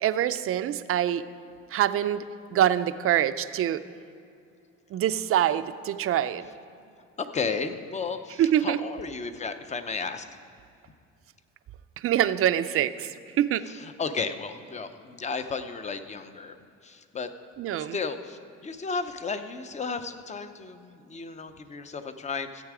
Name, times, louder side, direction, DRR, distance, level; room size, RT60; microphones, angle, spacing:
voice 1, 0.0-1.2 1.7-2.2 2.5-3.8 4.9-6.4 8.4-8.8 12.0-13.1 13.4-13.6 17.6-18.0, right 11 dB, 50° right, 12 dB, 0.4 m, -25 dB
voice 2, 7.2-10.3 13.7-16.6 16.8-17.3 17.9-22.6, left 4 dB, 25° left, 9 dB, 0.6 m, -33 dB
14.5 x 8.2 x 4.9 m, 2.4 s
cardioid pair, 130°, 30 cm